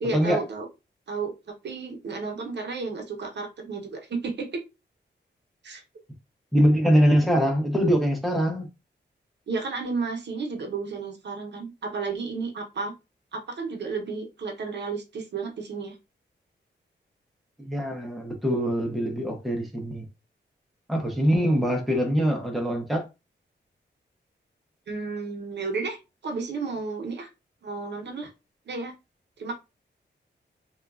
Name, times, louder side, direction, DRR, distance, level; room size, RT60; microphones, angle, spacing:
voice 1, 0.0-0.7 1.1-1.3 1.6-4.6 5.6-5.8 9.5-12.9 13.3-16.0 21.3-21.7 24.9-27.3 27.6-28.3 28.7-28.9 29.4-29.6, right 4 dB, 65° right, 0.7 m, -32 dB
voice 2, 6.5-8.7 17.6-20.0 20.9-23.0, equal, ahead, 0.6 m, -23 dB
3.0 x 2.3 x 2.3 m
wide cardioid pair, 170°, 19 cm